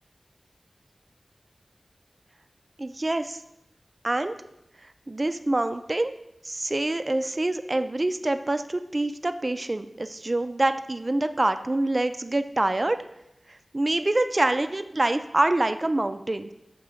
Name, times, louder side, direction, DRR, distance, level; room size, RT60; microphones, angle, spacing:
voice 1, 2.8-3.4 4.0-4.4 5.1-6.1 6.4-13.0 13.7-16.5, right 2 dB, 40° right, 10 dB, 0.3 m, -26 dB
7.3 x 2.9 x 4.9 m, 0.83 s
wide cardioid pair, 70°, 0 cm